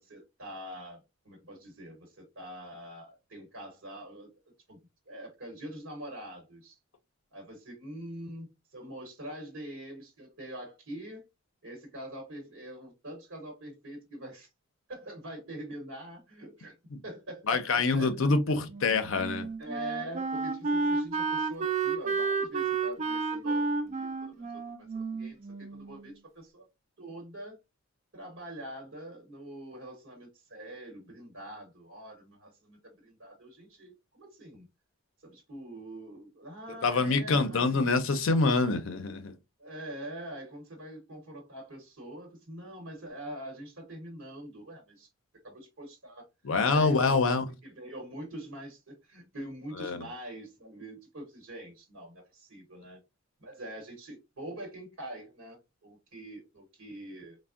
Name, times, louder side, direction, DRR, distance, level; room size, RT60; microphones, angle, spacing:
voice 1, 0.0-4.3 4.7-4.8 5.1-6.8 7.3-11.2 11.6-14.5 14.9-16.7 17.0-18.6 19.6-26.7 27.0-27.6 28.1-34.7 35.2-37.8 39.6-45.1 45.4-46.3 46.7-53.0 53.4-57.4, right 1 dB, 70° right, 1.0 m, -44 dB
voice 2, 17.5-19.5 36.8-39.3 46.4-47.4 49.8-50.1, left 3 dB, 70° left, 0.5 m, -26 dB
Wind instrument woodwind instrument, 18.7-26.0, right 4 dB, 35° right, 0.3 m, -31 dB
3.5 x 2.0 x 2.4 m
head